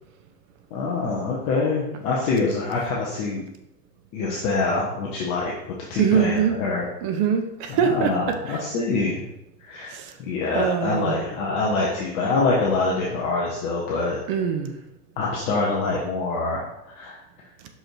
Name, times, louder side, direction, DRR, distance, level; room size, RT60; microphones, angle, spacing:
voice 1, 0.7-3.4 4.1-6.8 7.7-9.1 9.6-9.9 10.2-14.2 15.2-17.2, left 3 dB, 15° left, -3 dB, 0.3 m, -25 dB
voice 2, 6.0-6.6 7.0-8.6 9.9-10.1 10.5-11.2 14.3-14.7, right 7 dB, 30° right, 7 dB, 0.8 m, -23 dB
5.9 x 5.4 x 4.4 m, 0.89 s
hypercardioid pair, 130°, 49 cm